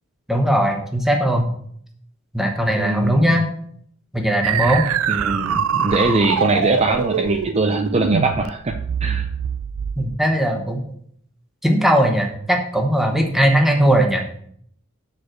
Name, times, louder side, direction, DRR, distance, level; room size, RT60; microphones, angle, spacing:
voice 1, 0.3-1.5 2.3-3.5 4.1-4.9 10.0-10.8 11.6-14.2, equal, ahead, 2 dB, 1.1 m, -18 dB
voice 2, 2.8-3.4 5.1-8.8 9.0-9.3, right 2 dB, 30° right, 4 dB, 0.5 m, -21 dB
sound 1, 4.4-10.2, right 8 dB, 85° right, 0.4 m, -24 dB
6.8 x 4.7 x 6.4 m, 0.65 s
head